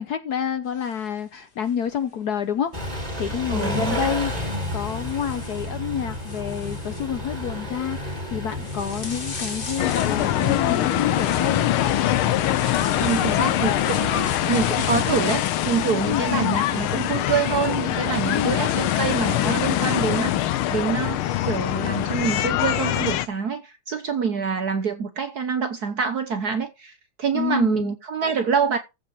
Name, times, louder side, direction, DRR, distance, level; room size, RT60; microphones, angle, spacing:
voice 1, 0.0-12.0 16.1-16.2 18.3-18.5 27.3-27.9, left 8 dB, 65° left, 1.1 m, -28 dB
sound 1, 0.7-2.2 3.4-3.6 4.3-18.7, left 4 dB, 45° left, 2.8 m, -41 dB
Car / Idling / Accelerating revving vroom, 2.7-15.1, left 1 dB, 20° right, 3.9 m, -32 dB
voice 2, 3.5-4.1 13.0-20.4 20.7-28.8, right 6 dB, 55° right, 1.4 m, -26 dB
sound 2, 9.8-23.3, left 13 dB, 80° left, 1.6 m, -23 dB
14.5 x 5.1 x 5.4 m
omnidirectional pair, 2.3 m